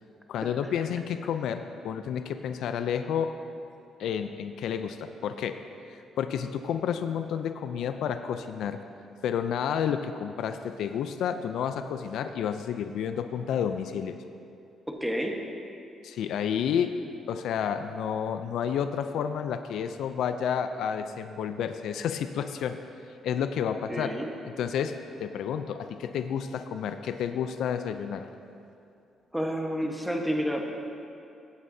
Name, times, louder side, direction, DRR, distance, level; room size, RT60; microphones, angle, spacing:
voice 1, 0.3-3.4 4.0-5.6 6.2-8.8 9.2-14.2 16.0-22.8 23.2-24.2 24.6-28.3, left 8 dB, 80° left, 9 dB, 0.4 m, -30 dB
voice 2, 14.9-15.4 23.9-24.3 29.3-30.6, equal, 5° right, 1 dB, 1.2 m, -30 dB
16.0 x 8.6 x 2.7 m, 2.6 s
cardioid pair, 90°, 0 cm